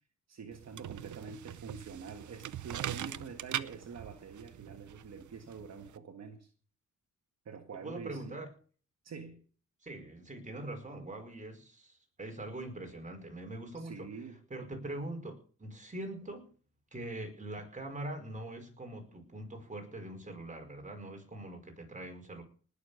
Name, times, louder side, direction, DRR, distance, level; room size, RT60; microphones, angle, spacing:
voice 1, 0.3-6.5 7.5-8.4 9.0-9.4 13.7-14.4, right 5 dB, 60° right, 5 dB, 1.7 m, -46 dB
sound 1, 0.5-6.0, right 11 dB, 75° right, 0.8 m, -42 dB
voice 2, 7.8-8.5 9.8-14.1 14.5-16.5 16.9-22.4, right 1 dB, 25° right, 5 dB, 4.9 m, -43 dB
19.0 x 7.0 x 6.8 m, 0.42 s
cardioid pair, 95°, 30 cm